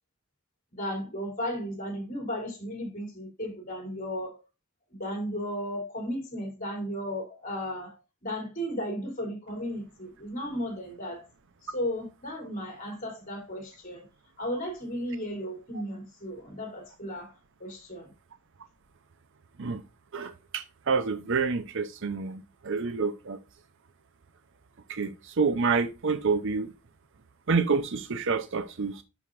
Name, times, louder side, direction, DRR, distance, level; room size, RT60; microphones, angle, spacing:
voice 1, 0.7-4.4 5.0-11.2 11.6-14.1 14.4-17.3 17.6-18.1, equal, 40° left, 3.5 m, -35 dB
voice 2, 20.1-23.4 24.9-26.7 27.5-29.0, right 4 dB, 60° right, 0.7 m, -28 dB
11.0 x 5.1 x 2.5 m
head